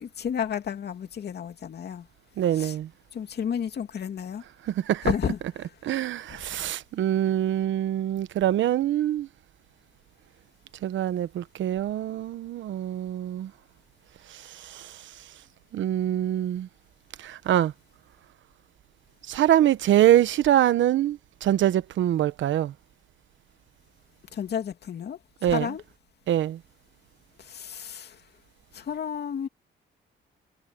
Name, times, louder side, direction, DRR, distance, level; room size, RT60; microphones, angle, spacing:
voice 1, 0.0-2.1 2.5-2.7 3.1-4.4 5.0-5.7 24.3-25.8 27.4-28.2 28.7-29.5, left 8 dB, 55° left, 2.7 m, -32 dB
voice 2, 2.4-2.9 4.7-5.1 5.8-9.3 10.8-13.5 14.3-14.9 15.7-16.7 17.2-17.7 19.3-22.7 25.4-25.7 26.3-26.6, right 12 dB, 75° right, 1.1 m, -24 dB
cardioid pair, 90°, 20 cm